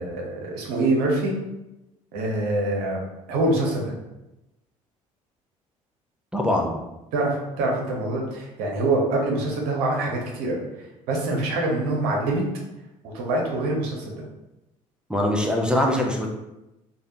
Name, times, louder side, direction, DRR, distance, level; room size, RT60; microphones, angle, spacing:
voice 1, 0.0-1.3 2.1-3.0 3.3-3.9 7.1-10.6 11.1-12.4 13.0-14.1, right 2 dB, 65° right, -1 dB, 0.8 m, -25 dB
voice 2, 6.3-6.8 15.1-16.3, left 1 dB, 5° right, 1 dB, 0.6 m, -22 dB
3.3 x 2.3 x 2.7 m, 0.95 s
figure-of-eight pair, 55°, 18 cm